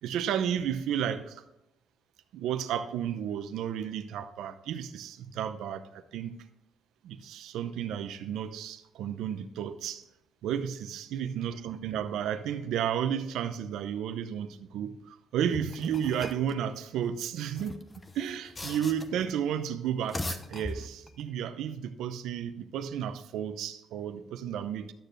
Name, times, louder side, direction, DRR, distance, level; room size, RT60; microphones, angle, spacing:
voice 1, 0.0-1.4 2.3-6.3 7.0-10.0 10.4-17.8 18.1-24.9, right 9 dB, 85° right, 10 dB, 0.7 m, -32 dB
sound 1, 15.5-16.5 17.4-19.3 19.9-21.2, left 2 dB, 25° left, 0.8 m, -39 dB
11.5 x 6.7 x 3.2 m, 0.88 s
cardioid pair, 90°, 0 cm